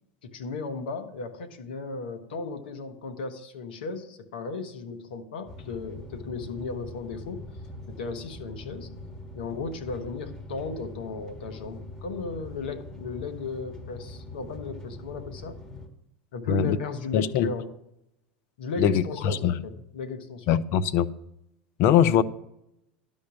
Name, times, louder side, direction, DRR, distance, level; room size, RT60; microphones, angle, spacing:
voice 1, 0.2-7.4 7.9-8.9 9.3-15.6 16.3-17.7 18.6-20.6 22.1-22.2, left 4 dB, 75° left, 1.2 m, -35 dB
sound 1, 5.5-15.9, left 2 dB, 15° left, 2.0 m, -43 dB
voice 2, 17.1-17.5 18.8-19.5 20.5-21.1 21.8-22.2, left 9 dB, 55° left, 0.6 m, -22 dB
11.5 x 5.4 x 7.0 m
hypercardioid pair, 85°, 5 cm